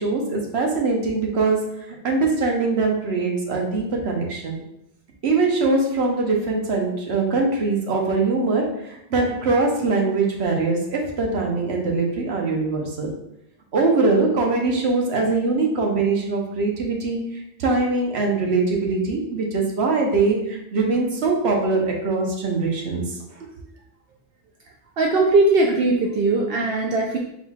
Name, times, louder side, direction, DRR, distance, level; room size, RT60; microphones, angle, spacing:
voice 1, 0.0-4.6 5.2-13.1 13.7-17.2 17.6-23.2, right 3 dB, 85° right, 0 dB, 1.1 m, -22 dB
voice 2, 25.0-27.2, right 2 dB, 70° right, 0 dB, 0.7 m, -19 dB
4.3 x 3.9 x 2.4 m, 0.80 s
omnidirectional pair, 1.1 m